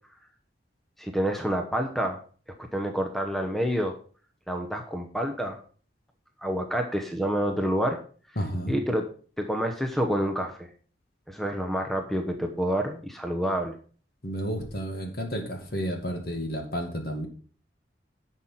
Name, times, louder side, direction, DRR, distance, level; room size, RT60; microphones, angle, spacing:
voice 1, 1.0-2.2 2.7-4.0 4.5-5.6 6.4-8.0 8.3-9.1 9.4-10.7 11.3-13.7, equal, ahead, 4 dB, 1.0 m, -28 dB
voice 2, 8.4-8.7 14.2-17.3, equal, 55° left, 5 dB, 2.1 m, -31 dB
11.0 x 6.2 x 5.7 m, 0.42 s
head